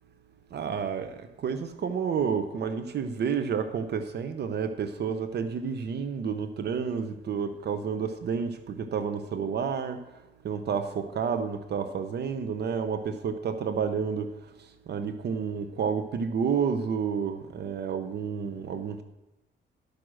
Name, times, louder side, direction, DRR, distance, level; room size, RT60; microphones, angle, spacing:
voice 1, 0.5-1.1 1.4-10.0 10.4-14.3 14.9-19.0, right 6 dB, 55° right, 9 dB, 0.8 m, -30 dB
12.0 x 6.4 x 6.2 m, 0.99 s
cardioid pair, 90°, 20 cm